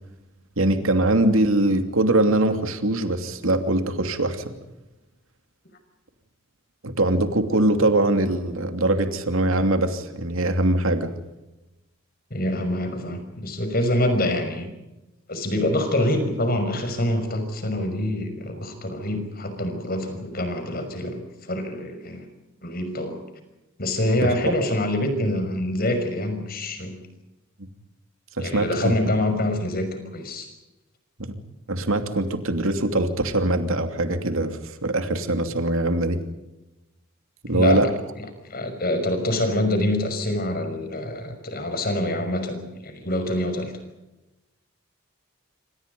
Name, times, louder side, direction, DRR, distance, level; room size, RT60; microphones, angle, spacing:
voice 1, 0.6-4.6 6.8-11.1 24.2-24.3 27.6-27.7 28.4-28.9 31.2-31.4 31.7-36.2 37.4-37.9, right 1 dB, 75° right, 7 dB, 2.8 m, -22 dB
voice 2, 12.3-14.7 15.3-22.2 22.6-23.2 23.8-27.0 28.4-30.5 37.5-37.9 38.5-43.7, left 1 dB, 45° left, 8 dB, 5.8 m, -25 dB
28.0 x 26.0 x 5.4 m, 1.0 s
head